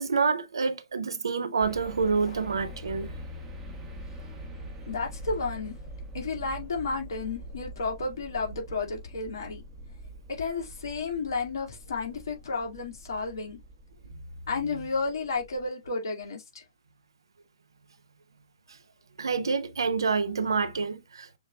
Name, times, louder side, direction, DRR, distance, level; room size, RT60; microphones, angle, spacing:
voice 1, 0.0-3.1 19.2-21.4, right 5 dB, 70° right, 0.8 m, -27 dB
sound 1, 1.6-15.7, right 1 dB, 10° right, 1.2 m, -44 dB
voice 2, 4.9-5.8 6.1-9.6 10.3-13.6 14.5-16.6, left 4 dB, 55° left, 2.2 m, -32 dB
6.9 x 3.1 x 2.4 m
figure-of-eight pair, 125°, 3 cm